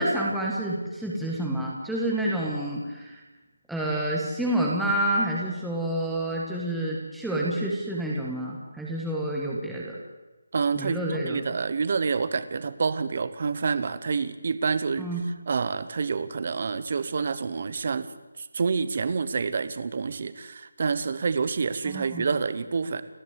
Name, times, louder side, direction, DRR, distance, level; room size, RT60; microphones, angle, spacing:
voice 1, 0.0-3.2 3.7-9.9 10.7-11.4 15.0-15.3 21.8-22.3, right 1 dB, ahead, -5 dB, 1.4 m, -28 dB
voice 2, 10.5-15.1 15.5-18.1 18.4-23.0, right 5 dB, 30° right, 14 dB, 1.0 m, -28 dB
29.5 x 11.0 x 8.2 m, 1.1 s
figure-of-eight pair, 180°, 0 cm